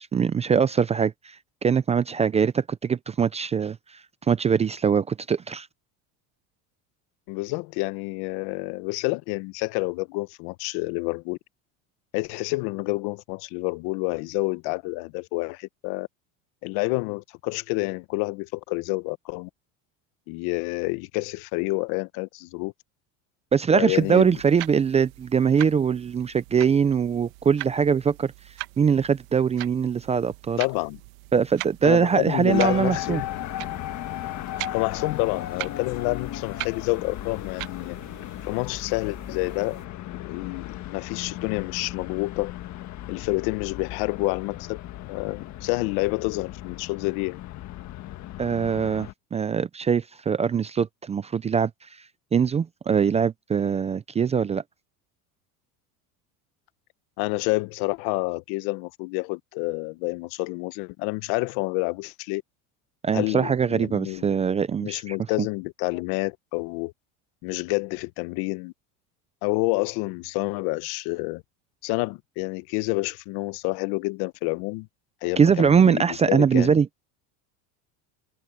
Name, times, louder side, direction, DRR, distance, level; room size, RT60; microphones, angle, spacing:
voice 1, 0.0-1.4 1.6-4.0 4.3-5.7 23.5-28.3 28.8-30.6 31.3-33.2 48.4-51.7 52.3-54.6 63.0-65.1 75.4-77.0, right 6 dB, 15° right, 0.4 m, -22 dB
voice 2, 7.3-11.4 12.1-16.1 16.6-19.5 20.3-22.7 23.7-24.3 30.6-31.0 31.8-33.3 34.7-38.0 38.4-39.8 40.1-42.5 43.1-44.8 45.1-47.4 57.2-62.4 63.1-64.3 64.8-66.9 67.4-68.7 69.4-71.4 71.8-74.9 75.2-76.8, left 24 dB, 65° left, 0.9 m, -28 dB
sound 1, 23.9-39.9, right 22 dB, 85° right, 1.3 m, -41 dB
sound 2, 32.5-49.1, left 13 dB, 45° left, 1.5 m, -36 dB
supercardioid pair, 130°, 39 cm